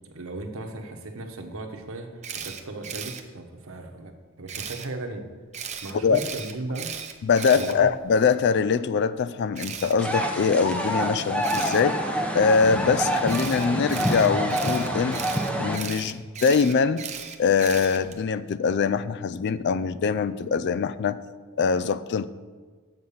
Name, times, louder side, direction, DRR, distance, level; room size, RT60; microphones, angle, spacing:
voice 1, 0.0-5.2 5.8-6.9 7.5-7.9, right 2 dB, 65° right, 5 dB, 1.0 m, -36 dB
Camera, 2.2-3.2 4.5-4.9 5.5-8.3 9.6-9.9 11.4-11.8 13.3-18.2, right 7 dB, 30° right, 0.6 m, -36 dB
voice 2, 7.2-12.0 12.3-15.2 15.6-17.1 17.4-21.2 21.6-22.3, left 5 dB, 50° left, 15 dB, 0.3 m, -23 dB
sound 1, 10.0-15.8, equal, 5° left, 0.7 m, -27 dB
7.7 x 6.8 x 5.6 m, 1.4 s
head